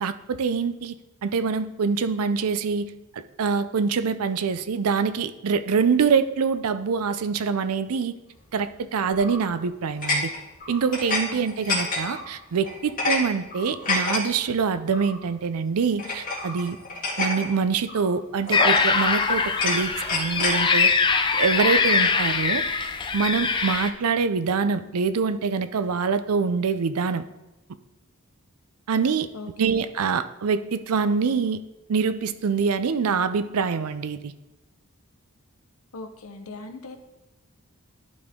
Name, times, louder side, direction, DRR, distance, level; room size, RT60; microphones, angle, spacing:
voice 1, 0.0-0.9 1.2-8.1 8.5-10.3 10.7-16.8 17.2-20.9 21.3-22.6 23.1-27.2 28.9-29.3 29.6-31.6 31.9-34.3, right 5 dB, 85° right, 12 dB, 0.5 m, -25 dB
sound 1, 9.1-9.5 10.0-11.2 11.5-12.3 12.7-13.2 13.5-14.2 14.9-15.1 16.0-17.5 17.9-18.1 18.5-19.1 19.5-20.6, left 2 dB, 40° left, 1.9 m, -27 dB
voice 2, 11.3-11.8 22.0-22.1 29.3-29.7 35.9-37.0, left 3 dB, 70° left, 7 dB, 0.8 m, -40 dB
sound 2, 18.5-23.9, left 5 dB, 20° left, 0.4 m, -22 dB
11.5 x 4.2 x 3.6 m, 1.0 s
head